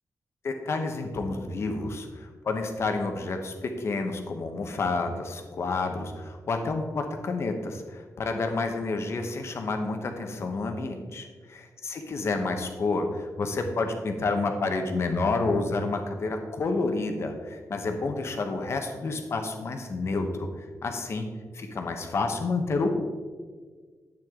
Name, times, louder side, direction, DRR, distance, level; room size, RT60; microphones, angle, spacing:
voice 1, 0.4-21.3 21.5-22.9, left 3 dB, 45° left, 5 dB, 1.1 m, -29 dB
11.0 x 8.6 x 3.8 m, 1.5 s
wide cardioid pair, 180°, 6 cm